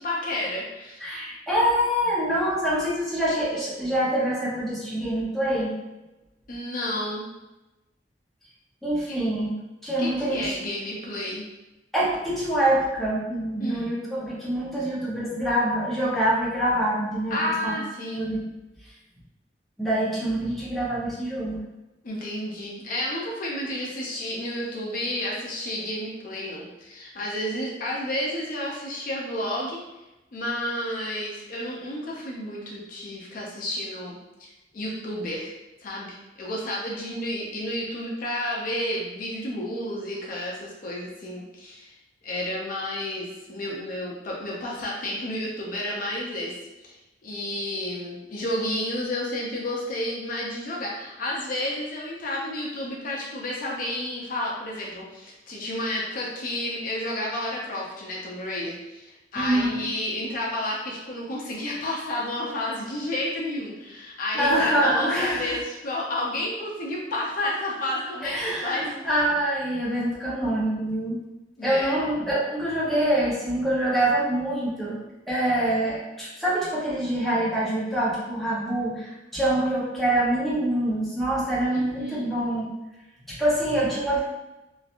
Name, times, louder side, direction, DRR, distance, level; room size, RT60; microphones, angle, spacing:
voice 1, 0.0-1.0 6.5-7.2 9.1-9.2 10.0-11.4 13.6-13.8 17.3-18.4 22.0-29.8 30.3-34.5 34.7-35.5 35.8-41.9 42.2-46.5 47.2-68.9 71.6-72.0 81.7-82.3, left 1 dB, 50° left, -3 dB, 0.5 m, -31 dB
voice 2, 1.0-5.7 8.8-9.5 9.8-10.6 11.9-17.4 17.6-17.8 18.1-18.4 19.8-21.6 59.3-59.8 64.4-65.6 68.2-71.2 71.6-75.0 75.3-82.7 83.3-84.2, right 1 dB, ahead, -7 dB, 0.7 m, -25 dB
3.0 x 2.4 x 2.4 m, 1.0 s
head